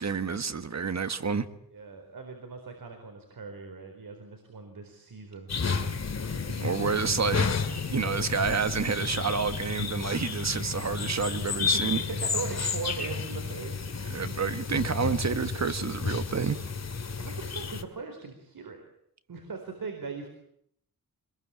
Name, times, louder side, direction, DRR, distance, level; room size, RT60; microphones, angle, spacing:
voice 1, 0.0-1.5 6.6-7.5 7.9-12.0 14.1-16.6, right 5 dB, 50° right, 11 dB, 1.5 m, -29 dB
voice 2, 1.7-5.5 6.3-6.7 11.5-14.2 17.2-18.8 19.3-20.3, right 4 dB, 70° right, 5 dB, 4.3 m, -40 dB
sound 1, 5.5-17.8, left 5 dB, 45° left, 2.3 m, -31 dB
26.0 x 21.5 x 8.7 m, 0.72 s
wide cardioid pair, 110°, 35 cm